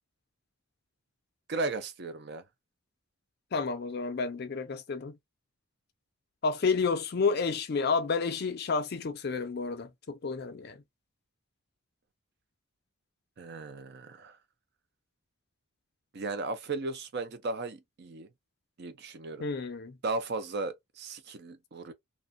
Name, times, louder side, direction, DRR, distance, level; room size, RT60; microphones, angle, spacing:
voice 1, 1.5-2.4 13.4-14.3 16.1-18.3 18.8-19.5 20.0-21.9, right 3 dB, 50° right, 0.4 m, -36 dB
voice 2, 3.5-5.2 6.4-10.8 19.4-20.0, left 4 dB, 45° left, 0.4 m, -30 dB
2.4 x 2.1 x 2.5 m
head